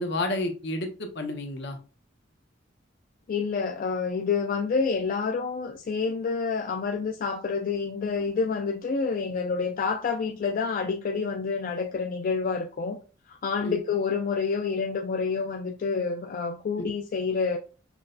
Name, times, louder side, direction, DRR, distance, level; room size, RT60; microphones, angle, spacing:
voice 1, 0.0-1.8 13.6-13.8 16.8-16.9, left 2 dB, 65° left, 0.8 m, -30 dB
voice 2, 3.3-13.0 13.3-17.6, left 5 dB, 45° left, 0.3 m, -28 dB
6.0 x 2.2 x 2.5 m
head